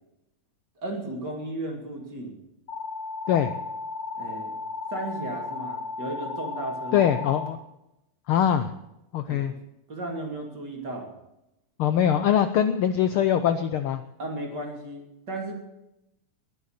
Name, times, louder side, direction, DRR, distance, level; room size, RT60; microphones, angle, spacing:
voice 1, 0.8-2.4 4.2-4.5 4.9-7.1 9.3-9.6 9.9-11.1 14.2-15.5, right 2 dB, 35° right, 1 dB, 3.2 m, -35 dB
sound 1, 2.7-7.5, left 4 dB, 60° left, 3.4 m, -34 dB
voice 2, 6.9-7.6 8.3-8.7 9.1-9.5 11.8-14.0, left 9 dB, 85° left, 10 dB, 1.2 m, -22 dB
21.0 x 8.3 x 6.6 m, 0.88 s
omnidirectional pair, 3.3 m